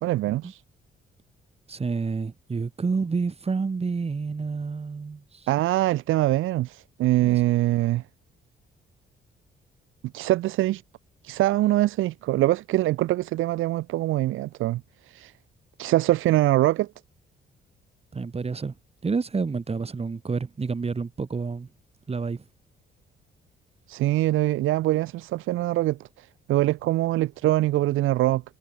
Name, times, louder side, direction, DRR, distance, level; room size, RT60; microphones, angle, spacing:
voice 1, 0.0-0.6 5.5-8.0 10.1-10.8 11.2-15.3 15.8-16.9 23.9-28.4, right 16 dB, 90° right, 2.8 m, -23 dB
voice 2, 1.7-5.2 7.2-7.4 18.1-18.7 19.0-21.7 22.1-22.4, right 4 dB, 30° right, 3.7 m, -29 dB
cardioid pair, 90°, 20 cm